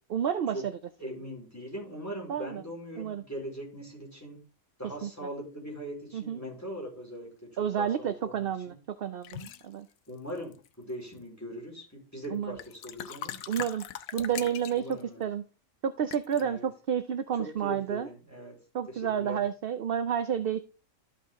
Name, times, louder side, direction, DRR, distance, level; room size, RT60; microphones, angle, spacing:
voice 1, 0.1-0.7 2.3-2.6 3.0-3.2 5.0-5.1 6.1-6.4 7.6-9.9 12.3-12.5 13.5-13.8 14.1-15.4 15.8-18.1 18.7-20.6, right 8 dB, 55° right, 11 dB, 0.7 m, -30 dB
voice 2, 1.0-4.5 4.8-8.8 10.1-13.4 14.3-15.3 16.3-16.7 17.3-18.6 18.9-19.4, equal, 10° left, -3 dB, 4.3 m, -41 dB
sound 1, 9.2-9.6 10.4-10.9 12.2-12.3 12.6-15.0 16.1-16.4, left 10 dB, 85° left, 1.1 m, -40 dB
12.5 x 5.7 x 3.6 m, 0.34 s
omnidirectional pair, 1.4 m